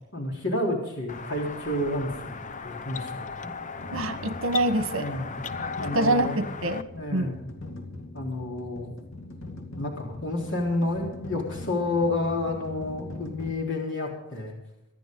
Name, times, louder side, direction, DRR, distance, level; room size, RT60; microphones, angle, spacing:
voice 1, 0.1-2.4 2.6-3.5 4.9-5.3 5.8-6.5 6.9-7.5 8.1-8.9 9.8-14.6, left 2 dB, 60° left, -1 dB, 3.8 m, -30 dB
sound 1, 1.1-6.8, left 5 dB, 35° left, 0.7 m, -37 dB
sound 2, 3.8-13.5, left 2 dB, 85° left, 2.4 m, -41 dB
voice 2, 3.9-5.1 5.9-6.9 7.1-7.4, right 1 dB, 80° right, 10 dB, 1.5 m, -25 dB
25.5 x 10.5 x 3.9 m, 0.87 s
head